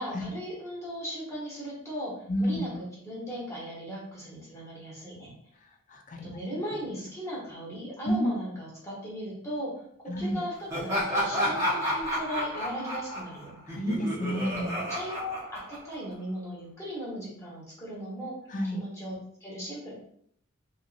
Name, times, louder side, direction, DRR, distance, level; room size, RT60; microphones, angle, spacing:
voice 1, 0.0-5.3 6.2-13.6 14.4-18.4 18.7-19.9, equal, 15° left, -6 dB, 1.1 m, -37 dB
voice 2, 2.3-2.7 5.9-6.4 8.1-8.3 10.1-10.4 13.7-14.8 18.5-18.8, equal, 40° left, 3 dB, 0.4 m, -29 dB
Laughter, 10.7-16.1, equal, 15° right, 0.7 m, -31 dB
2.9 x 2.6 x 2.5 m, 0.66 s
head